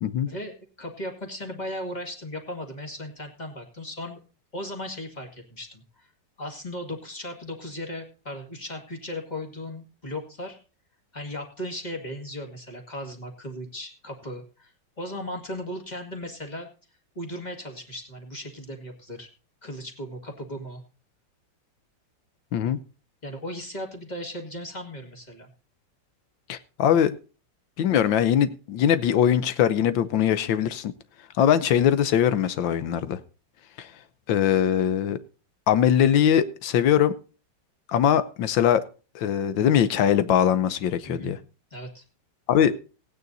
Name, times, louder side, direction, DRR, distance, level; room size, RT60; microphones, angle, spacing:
voice 1, 0.2-4.2 4.5-6.1 6.4-10.6 11.1-16.7 17.2-19.3 19.6-20.8 23.2-25.5 41.1-41.4 41.7-42.0, equal, 20° left, 3 dB, 2.3 m, -37 dB
voice 2, 26.5-27.2 27.8-30.9 31.4-33.2 33.8-33.9 34.3-35.2 35.7-37.1 37.9-38.8 39.1-41.4 42.5-42.7, left 9 dB, 80° left, 14 dB, 1.6 m, -21 dB
16.5 x 9.3 x 4.0 m, 0.35 s
omnidirectional pair, 2.0 m